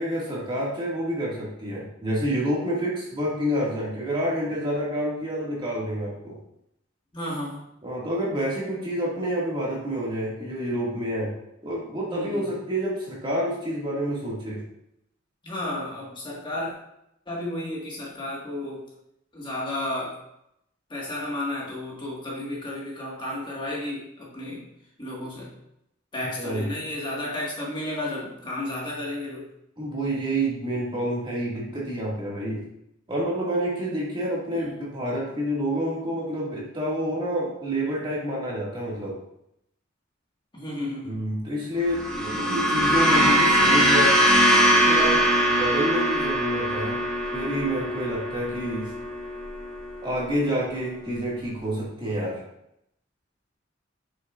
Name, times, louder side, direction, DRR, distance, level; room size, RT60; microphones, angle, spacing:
voice 1, 0.0-6.4 7.8-11.3 11.6-14.6 26.2-26.7 29.8-32.6 33.1-39.2 41.0-44.2 44.7-47.0 47.3-48.9 50.0-52.4, equal, 25° right, -5 dB, 2.0 m, -28 dB
voice 2, 7.1-7.6 12.1-12.4 15.4-16.7 17.3-18.9 19.3-20.1 20.9-24.7 25.0-25.5 26.1-29.5 34.5-34.8 40.5-41.2, left 1 dB, 25° left, -5 dB, 1.7 m, -32 dB
sound 1, 41.9-50.3, equal, 5° left, 1.2 m, -22 dB
7.7 x 6.4 x 2.5 m, 0.79 s
head